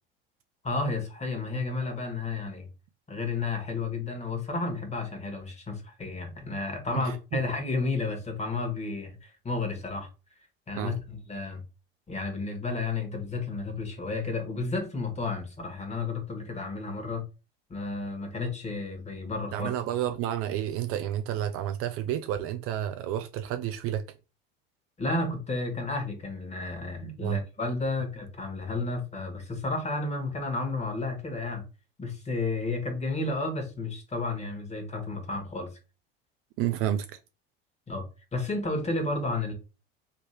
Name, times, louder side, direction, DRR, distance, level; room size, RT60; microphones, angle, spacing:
voice 1, 0.6-2.7 3.1-10.1 10.7-11.6 12.1-17.2 17.7-19.7 25.0-31.6 32.0-35.7 37.9-38.0 38.3-39.5, left 3 dB, 20° left, 1.4 m, -32 dB
voice 2, 6.9-7.4 10.8-10.9 19.5-24.0 27.2-27.4 36.6-37.1, right 11 dB, 50° right, 0.4 m, -30 dB
3.1 x 2.9 x 3.2 m
hypercardioid pair, 75°, 30 cm